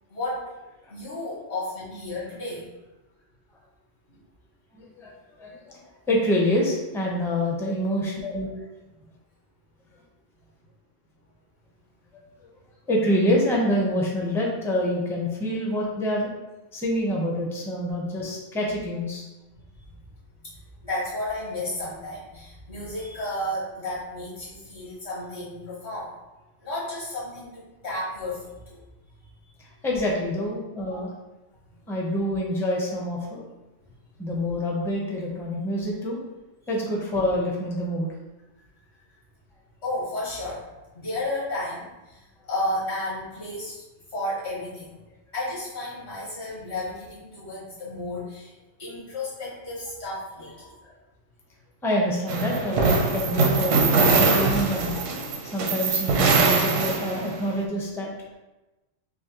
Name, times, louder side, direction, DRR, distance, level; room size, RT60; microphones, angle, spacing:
voice 1, 0.1-0.5 0.9-2.6 20.8-26.1 26.6-28.8 33.8-33.9 39.8-40.6 40.9-43.8 44.1-45.0 45.3-48.5 48.8-50.7, left 1 dB, 60° left, -8 dB, 1.7 m, -32 dB
voice 2, 4.7-5.1 5.4-5.8 6.1-8.5 12.1-12.2 12.9-16.3 16.7-19.2 29.8-31.1 31.9-33.4 34.2-36.2 36.7-38.1 50.8-50.9 51.8-55.0 55.4-58.1, left 1 dB, 5° left, -3 dB, 0.4 m, -26 dB
sound 1, 52.3-57.5, right 4 dB, 85° right, 1.0 m, -22 dB
6.0 x 2.0 x 2.8 m, 1.1 s
omnidirectional pair, 1.3 m